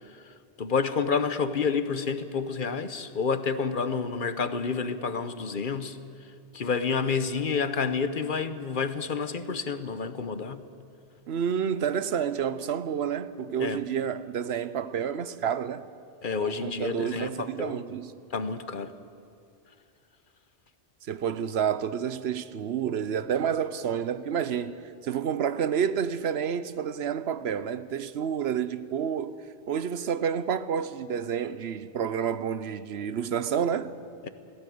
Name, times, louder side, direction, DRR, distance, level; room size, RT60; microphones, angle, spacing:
voice 1, 0.1-6.0 6.5-10.6 13.6-13.8 16.2-17.8 18.3-18.9 34.2-34.3, left 5 dB, 55° left, 1.0 m, -29 dB
voice 2, 11.3-15.8 16.4-18.1 21.1-33.9, right 8 dB, 75° right, 1.0 m, -29 dB
19.0 x 16.0 x 9.4 m
omnidirectional pair, 1.1 m